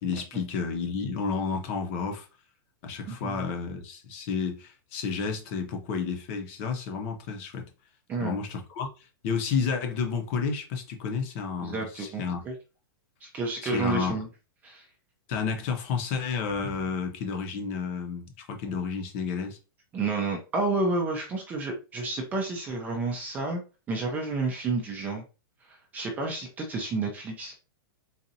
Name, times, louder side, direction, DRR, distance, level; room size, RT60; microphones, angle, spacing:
voice 1, 0.0-2.3 2.8-7.7 8.2-12.4 13.6-14.2 15.3-19.6, left 5 dB, 35° left, 0.8 m, -31 dB
voice 2, 3.1-3.4 8.1-8.4 11.6-12.5 13.2-14.3 14.6-14.9 19.9-23.6 23.9-25.2 25.7-27.6, right 3 dB, 15° right, 0.5 m, -30 dB
4.0 x 2.4 x 2.7 m
supercardioid pair, 165°, 12 cm